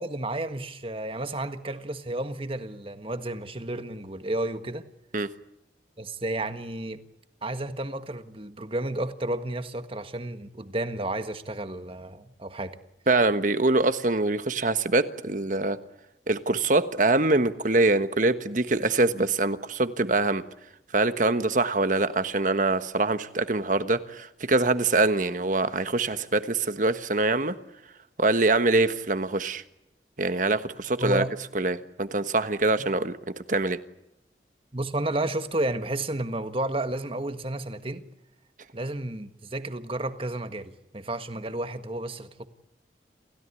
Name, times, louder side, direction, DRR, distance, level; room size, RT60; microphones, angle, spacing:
voice 1, 0.0-4.8 6.0-7.0 7.4-12.7 31.0-31.3 34.7-38.0 38.7-42.5, right 1 dB, 30° right, 1.6 m, -32 dB
voice 2, 13.1-15.8 16.3-20.4 20.9-27.5 28.2-29.6 30.2-31.2 31.5-33.1 33.5-33.8, right 2 dB, 45° right, 1.4 m, -24 dB
28.5 x 16.5 x 9.8 m
head